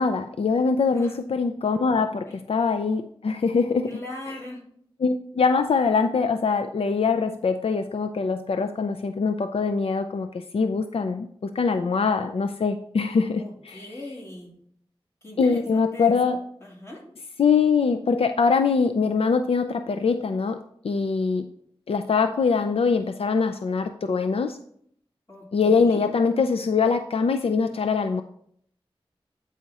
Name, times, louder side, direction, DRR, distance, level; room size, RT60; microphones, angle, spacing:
voice 1, 0.0-4.0 5.0-13.8 15.4-16.4 17.4-20.6 20.8-21.5 21.9-24.6 25.5-28.2, left 5 dB, 75° left, 8 dB, 0.4 m, -23 dB
voice 2, 3.9-4.6 13.4-14.5 15.2-17.0 25.3-26.0, left 1 dB, 30° left, -2 dB, 2.6 m, -40 dB
8.8 x 4.9 x 4.1 m, 0.66 s
wide cardioid pair, 85°, 10 cm